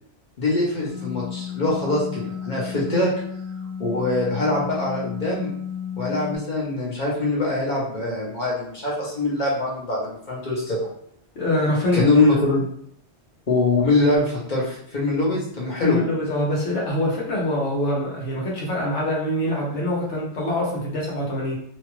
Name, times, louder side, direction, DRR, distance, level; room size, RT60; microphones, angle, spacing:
voice 1, 0.4-3.1 3.8-5.5 6.0-10.9 11.9-12.7 13.5-16.1, left 2 dB, 45° left, -4 dB, 0.9 m, -23 dB
sound 1, 0.9-6.4, left 7 dB, 55° right, 0.7 m, -33 dB
voice 2, 11.3-12.1 15.7-21.5, left 1 dB, 75° left, -3 dB, 1.2 m, -24 dB
2.9 x 2.3 x 3.0 m, 0.66 s
omnidirectional pair, 1.2 m